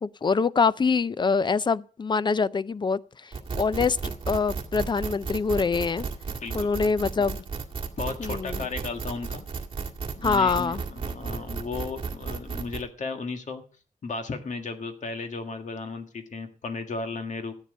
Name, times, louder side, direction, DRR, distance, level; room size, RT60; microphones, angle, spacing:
voice 1, 0.0-4.0 4.3-6.1 6.5-7.4 8.2-8.6 10.2-10.8, left 5 dB, 35° left, 0.5 m, -25 dB
sound 1, 3.3-12.8, right 5 dB, 40° right, 2.0 m, -34 dB
voice 2, 6.3-6.7 7.1-7.2 8.0-9.5 10.2-13.6 14.0-17.5, left 4 dB, 65° left, 1.8 m, -35 dB
13.5 x 9.0 x 5.1 m
wide cardioid pair, 130°, 13 cm